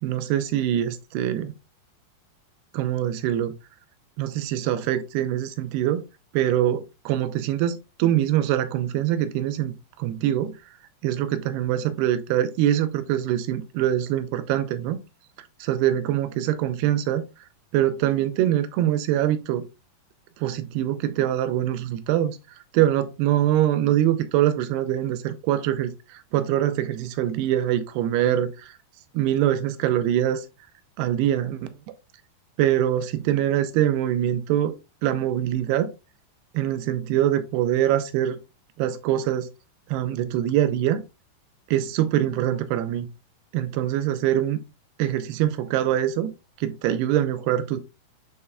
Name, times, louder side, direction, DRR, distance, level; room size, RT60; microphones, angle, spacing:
voice 1, 0.0-1.5 2.7-3.5 4.2-6.0 6.3-10.6 11.0-15.0 15.6-17.2 17.7-19.7 20.4-22.4 22.7-28.5 29.1-30.5 31.0-31.7 32.6-34.8 35.0-35.9 36.5-38.4 38.8-39.5 39.9-41.0 41.7-43.1 43.5-44.6 45.0-46.3 46.6-47.8, right 12 dB, 85° right, 2.6 m, -24 dB
7.8 x 5.5 x 2.2 m
omnidirectional pair, 4.7 m